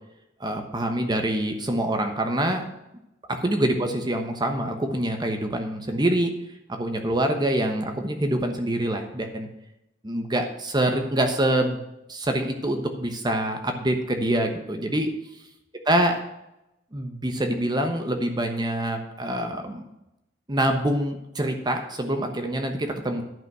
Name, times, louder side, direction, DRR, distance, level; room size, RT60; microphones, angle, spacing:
voice 1, 0.4-2.7 3.3-6.3 6.7-9.5 10.0-11.8 12.1-15.2 15.9-16.2 16.9-19.8 20.5-23.2, right 1 dB, 25° right, 5 dB, 1.1 m, -25 dB
10.5 x 5.9 x 6.1 m, 0.88 s
head